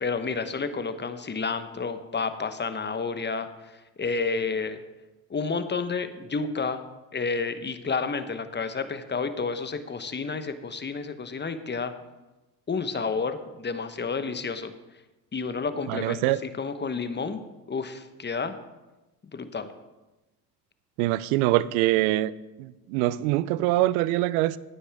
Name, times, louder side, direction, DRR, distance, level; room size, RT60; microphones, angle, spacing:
voice 1, 0.0-4.8 5.3-6.8 7.1-11.9 12.7-14.7 15.3-17.4 17.7-18.6 19.3-19.7, left 4 dB, 25° left, 10 dB, 1.1 m, -30 dB
voice 2, 15.9-16.4 21.0-22.3 22.6-24.6, right 16 dB, 80° right, 19 dB, 0.6 m, -24 dB
15.0 x 9.6 x 3.6 m, 1.1 s
hypercardioid pair, 65°, 42 cm